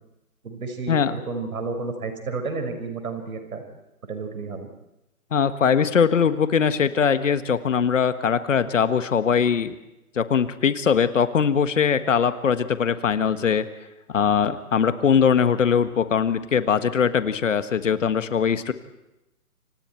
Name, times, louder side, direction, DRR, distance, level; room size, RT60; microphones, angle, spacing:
voice 1, 0.4-3.6 4.1-4.7, right 4 dB, 65° right, 6 dB, 5.8 m, -31 dB
voice 2, 5.3-9.7 10.1-13.7 14.1-18.7, left 7 dB, 55° left, 11 dB, 1.6 m, -21 dB
29.0 x 25.5 x 4.6 m, 0.92 s
hypercardioid pair, 160°, 46 cm